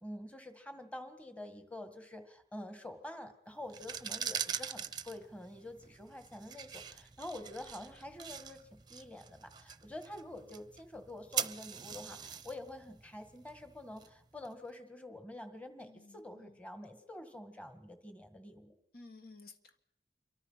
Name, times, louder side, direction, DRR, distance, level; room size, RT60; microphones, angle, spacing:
voice 1, 0.0-18.7, left 1 dB, 10° left, 8 dB, 1.8 m, -47 dB
sound 1, 3.6-14.5, right 8 dB, 25° right, 0.8 m, -43 dB
voice 2, 15.8-16.6 18.9-19.8, left 3 dB, 55° left, 8 dB, 1.6 m, -55 dB
27.5 x 24.0 x 5.7 m, 0.75 s
head